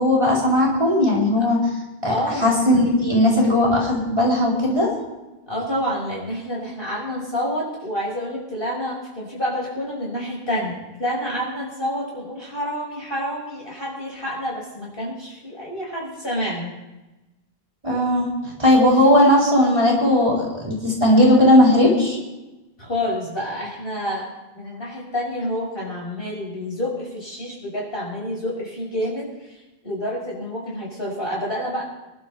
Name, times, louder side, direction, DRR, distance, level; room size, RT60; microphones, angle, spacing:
voice 1, 0.0-1.6 2.0-2.1 2.4-4.9 17.8-18.3 18.6-22.2, left 1 dB, 30° right, -4 dB, 4.0 m, -17 dB
voice 2, 2.1-2.6 5.5-16.7 22.8-24.3 24.5-31.8, equal, 65° left, -4 dB, 6.3 m, -28 dB
26.0 x 12.0 x 3.4 m, 1.1 s
omnidirectional pair, 1.0 m